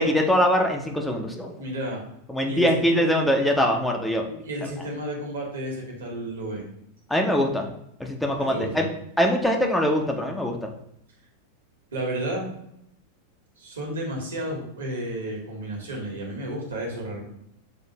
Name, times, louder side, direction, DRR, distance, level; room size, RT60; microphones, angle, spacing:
voice 1, 0.0-1.5 2.3-4.2 7.1-7.7 8.0-8.8 9.2-10.7, equal, 5° left, 2 dB, 0.6 m, -22 dB
voice 2, 1.6-2.0 2.5-3.0 4.3-6.7 8.4-8.9 11.9-12.5 13.6-17.2, right 1 dB, 70° right, 0 dB, 1.4 m, -32 dB
6.3 x 2.6 x 2.8 m, 0.75 s
figure-of-eight pair, 90°, 0 cm